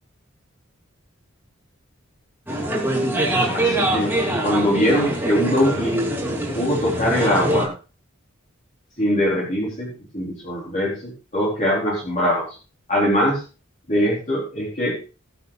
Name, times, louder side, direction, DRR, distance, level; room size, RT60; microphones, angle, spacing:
sound 1, 2.5-7.7, right 1 dB, 10° right, 3.1 m, -23 dB
voice 1, 3.5-4.1 4.4-6.0 6.5-7.7 9.0-12.5 12.9-13.4 13.9-15.0, equal, 35° left, -6 dB, 4.0 m, -22 dB
21.0 x 8.2 x 2.5 m, 0.33 s
head